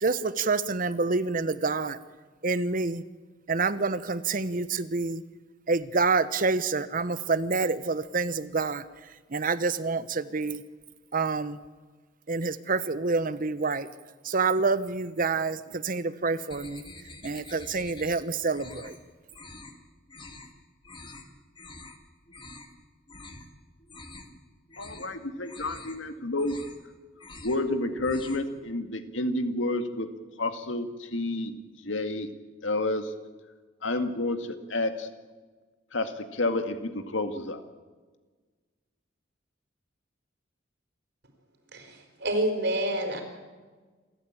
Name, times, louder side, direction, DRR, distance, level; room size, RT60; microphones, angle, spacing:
voice 1, 0.0-2.0 2.4-3.0 3.5-5.2 5.7-8.8 9.3-10.6 11.1-11.6 12.3-13.9 14.2-16.8 17.2-19.0, right 4 dB, 45° right, 15 dB, 0.9 m, -27 dB
sound 1, 16.5-18.2 18.5-19.0 19.3-19.7 20.1-20.5 20.8-21.2 21.6-22.0 22.3-22.7 23.1-23.5 23.8-24.4 24.7-25.1 25.5-26.0 26.3-26.9 27.2-27.6 27.9-28.5, left 2 dB, 25° left, 2.2 m, -46 dB
voice 2, 24.8-26.6 27.4-30.1 30.4-31.5 31.8-32.3 32.6-33.0 33.8-35.1 35.9-37.6, left 2 dB, 85° left, 8 dB, 2.0 m, -30 dB
voice 3, 41.7-43.2, right 1 dB, 65° right, 4 dB, 4.5 m, -28 dB
27.5 x 13.5 x 8.8 m, 1.4 s
head